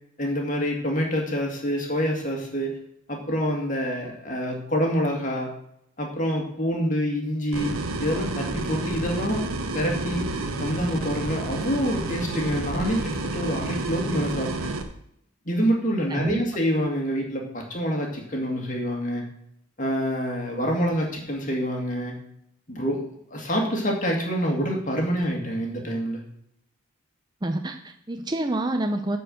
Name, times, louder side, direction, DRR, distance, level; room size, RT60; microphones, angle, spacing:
voice 1, 0.2-2.8 3.1-5.5 6.0-7.7 8.0-9.4 9.7-10.3 10.6-14.5 15.5-19.2 19.8-22.2 22.7-23.0 23.3-26.2, equal, 35° left, 1 dB, 2.2 m, -26 dB
sound 1, 7.5-14.8, right 2 dB, 90° right, 1.1 m, -30 dB
voice 2, 16.1-16.4 27.4-29.2, right 1 dB, 20° right, 5 dB, 0.6 m, -27 dB
9.7 x 4.7 x 7.7 m, 0.75 s
head